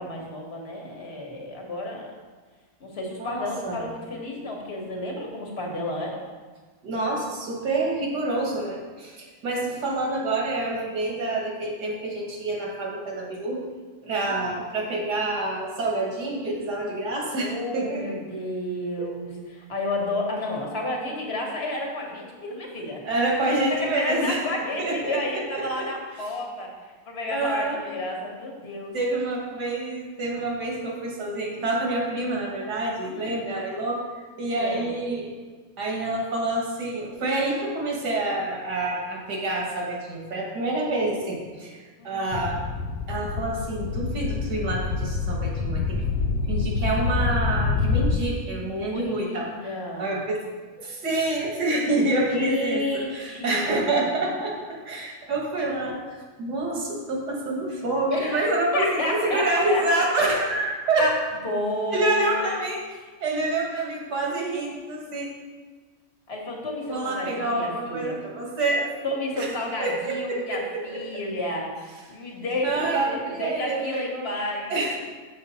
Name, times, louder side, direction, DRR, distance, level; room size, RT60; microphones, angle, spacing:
voice 1, 0.0-2.1 2.8-6.2 14.3-14.4 17.4-23.0 23.5-26.7 27.0-28.9 33.0-33.4 34.5-35.0 42.0-42.4 48.7-50.1 52.3-54.0 58.1-58.5 58.7-60.1 61.0-61.1 61.4-62.5 66.3-68.2 69.0-74.7, left 1 dB, 40° left, 0 dB, 1.4 m, -31 dB
voice 2, 3.2-3.9 6.8-13.6 14.0-18.2 19.0-19.1 23.0-24.4 24.8-25.9 27.3-27.8 28.9-35.3 35.8-42.6 43.1-46.0 46.5-49.7 50.0-50.4 50.8-61.1 61.9-65.3 66.9-68.9 69.4-69.5 69.8-71.0 72.6-74.3 74.7-75.0, right 2 dB, 80° right, -2 dB, 2.0 m, -27 dB
sound 1, 42.3-48.2, left 4 dB, 90° left, 1.2 m, -26 dB
6.5 x 6.4 x 4.1 m, 1.4 s
omnidirectional pair, 1.7 m